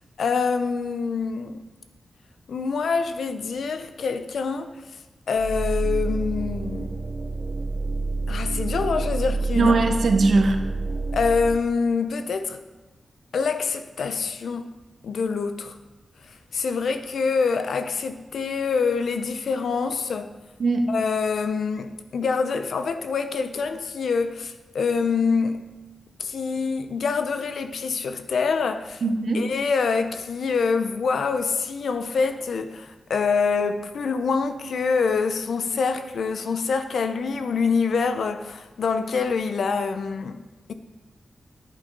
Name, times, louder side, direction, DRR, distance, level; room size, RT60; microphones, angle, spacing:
voice 1, 0.2-1.6 2.5-4.7 5.3-7.0 8.3-9.8 11.1-12.6 13.3-14.7 15.0-15.8 16.5-20.3 20.9-25.7 26.2-29.0 29.3-40.4, left 5 dB, 90° left, 0.6 m, -25 dB
sound 1, 5.4-11.6, right 3 dB, 35° right, 0.5 m, -28 dB
voice 2, 9.5-10.6 20.6-20.9 29.0-29.4, right 3 dB, 65° right, 1.0 m, -20 dB
10.5 x 8.8 x 3.9 m
wide cardioid pair, 170°, 0 cm